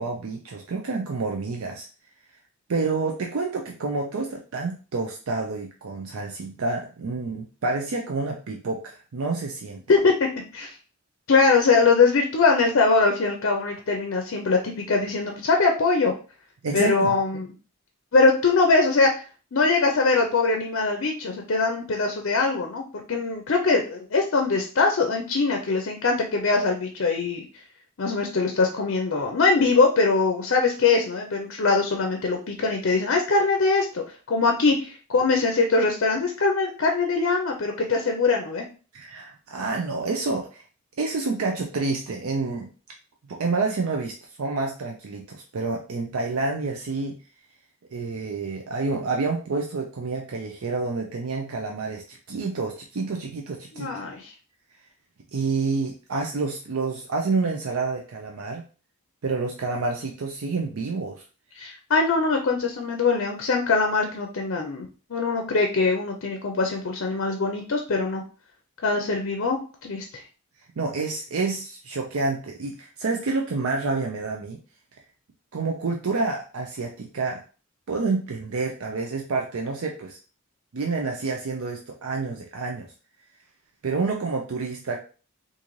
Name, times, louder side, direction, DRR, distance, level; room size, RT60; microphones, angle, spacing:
voice 1, 0.0-1.9 2.7-9.8 16.6-17.2 38.9-40.6 41.0-42.7 43.3-47.2 47.9-53.9 55.3-58.6 59.2-61.2 70.8-74.6 75.5-77.4 77.9-80.2 80.7-82.9 83.8-85.0, right 3 dB, 70° right, 1 dB, 0.5 m, -28 dB
voice 2, 9.9-10.7 11.3-14.6 14.9-16.1 16.7-17.5 18.1-19.2 19.5-22.8 23.1-27.4 28.0-34.0 34.3-38.6 53.7-54.3 61.6-68.2 68.8-70.2, left 4 dB, 55° left, 3 dB, 0.5 m, -22 dB
3.8 x 2.6 x 3.0 m, 0.37 s
head